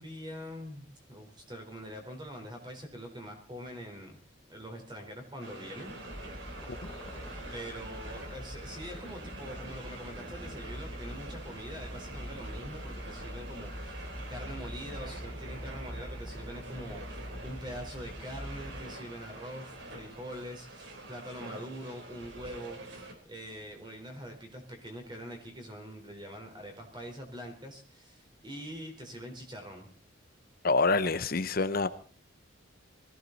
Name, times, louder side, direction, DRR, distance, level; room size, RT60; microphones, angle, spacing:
voice 1, 0.0-4.2 4.5-5.9 7.5-29.9, equal, 25° right, 4 dB, 4.2 m, -44 dB
sound 1, 5.4-23.1, right 1 dB, 65° right, 3.9 m, -46 dB
sound 2, 6.1-18.9, equal, 10° left, 1.4 m, -44 dB
voice 2, 30.6-31.9, left 3 dB, 45° left, 11 dB, 0.8 m, -26 dB
21.0 x 16.0 x 4.1 m, 0.39 s
head